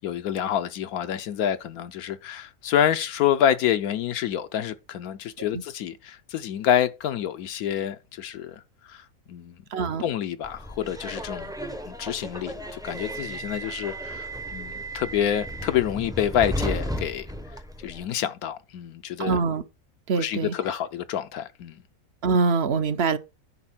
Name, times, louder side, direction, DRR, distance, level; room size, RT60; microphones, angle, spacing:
voice 1, 0.0-9.6 10.0-11.5 11.8-17.3 17.8-19.4 20.2-21.8, left 10 dB, 75° left, 1.1 m, -27 dB
voice 2, 9.7-10.0 19.2-19.6 20.1-20.5 22.2-23.2, right 5 dB, 55° right, 0.8 m, -23 dB
Subway metro underground, 10.4-18.0, equal, 5° right, 0.5 m, -34 dB
9.8 x 4.6 x 5.9 m
omnidirectional pair, 1.6 m